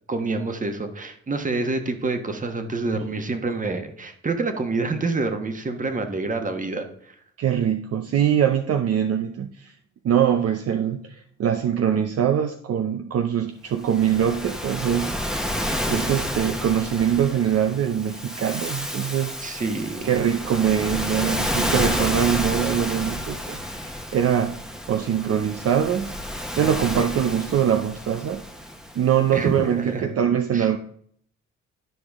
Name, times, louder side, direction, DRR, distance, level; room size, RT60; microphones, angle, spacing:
voice 1, 0.1-7.1 19.4-20.1 29.3-30.1 30.5-30.7, right 3 dB, 25° right, 7 dB, 1.3 m, -27 dB
voice 2, 7.4-9.7 10.0-15.2 15.9-19.4 20.0-24.6 24.9-26.2 26.6-28.4 29.0-30.8, right 9 dB, 55° right, 7 dB, 0.6 m, -23 dB
Waves surf, 13.8-29.3, equal, ahead, 1.0 m, -30 dB
12.0 x 5.0 x 3.6 m, 0.62 s
cardioid pair, 90°, 30 cm